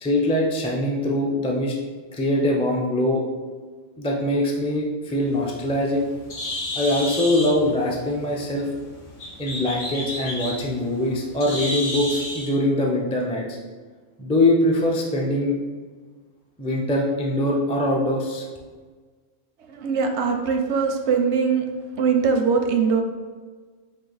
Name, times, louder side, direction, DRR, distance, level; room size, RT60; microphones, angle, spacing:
voice 1, 0.0-1.7 2.2-3.2 4.0-6.0 6.8-8.7 9.4-13.6 14.2-15.6 16.6-18.4, left 1 dB, 10° left, -2 dB, 0.3 m, -22 dB
Bird, 5.2-12.5, left 1 dB, 85° left, 1.2 m, -32 dB
voice 2, 19.7-21.7 22.0-23.0, right 5 dB, 90° right, 4 dB, 0.9 m, -21 dB
4.9 x 2.6 x 3.9 m, 1.4 s
omnidirectional pair, 1.1 m